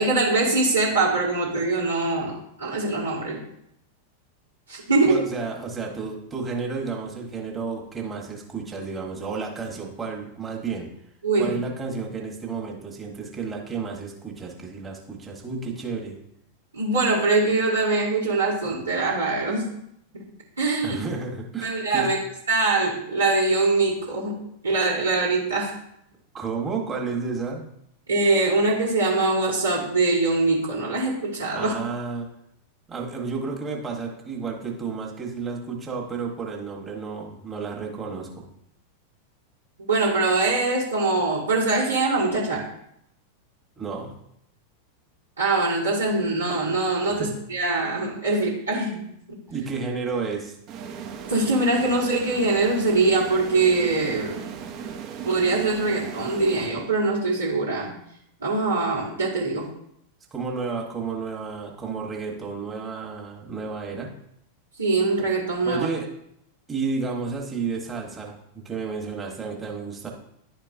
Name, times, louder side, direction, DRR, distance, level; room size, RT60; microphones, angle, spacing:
voice 1, 0.0-3.4 4.7-5.2 11.2-11.6 16.7-19.7 20.1-20.2 20.6-21.0 21.6-22.2 22.5-24.4 24.6-25.7 28.1-31.7 39.8-42.7 45.4-49.0 51.3-54.4 55.2-57.9 58.4-59.7 64.8-65.9, right 3 dB, 75° right, -7 dB, 1.5 m, -23 dB
voice 2, 5.0-10.9 11.4-16.2 20.8-22.1 26.3-27.7 31.5-32.3 32.9-38.5 43.8-44.1 47.0-47.3 49.5-50.6 60.3-64.1 65.6-66.1 66.7-70.1, right 4 dB, 15° right, -1 dB, 1.4 m, -31 dB
sound 1, 50.7-57.3, right 7 dB, 40° right, 0.7 m, -37 dB
10.5 x 4.5 x 2.6 m, 0.75 s
figure-of-eight pair, 90°, 0 cm